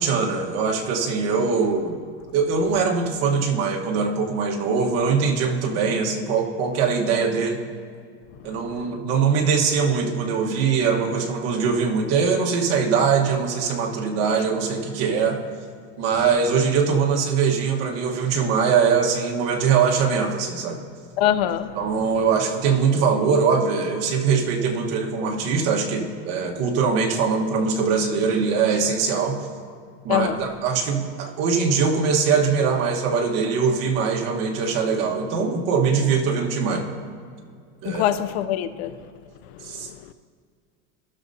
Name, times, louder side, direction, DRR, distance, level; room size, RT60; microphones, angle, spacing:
voice 1, 0.0-2.0 2.3-7.6 8.4-15.4 16.0-20.8 21.7-29.4 30.0-36.9 37.8-38.0 39.6-39.9, right 5 dB, 55° right, 1.3 m, -22 dB
voice 2, 8.4-9.0 21.2-21.8 30.1-30.5 37.8-39.0 39.5-40.1, left 11 dB, 85° left, 0.6 m, -25 dB
15.5 x 6.6 x 2.7 m
supercardioid pair, 135°, 31 cm